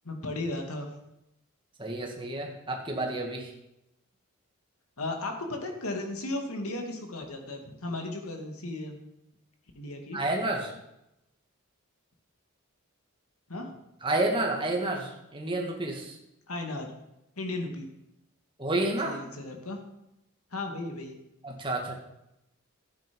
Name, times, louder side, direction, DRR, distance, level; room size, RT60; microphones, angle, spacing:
voice 1, 0.0-0.9 5.0-9.0 9.8-10.2 13.5-13.8 16.5-16.9 17.4-17.9 19.0-19.8 20.5-21.2, left 2 dB, 90° left, 3 dB, 2.3 m, -35 dB
voice 2, 1.8-3.5 10.1-10.8 14.0-16.2 18.6-19.2 21.4-22.0, right 2 dB, 20° right, 1 dB, 1.9 m, -30 dB
13.0 x 9.4 x 5.4 m, 0.87 s
head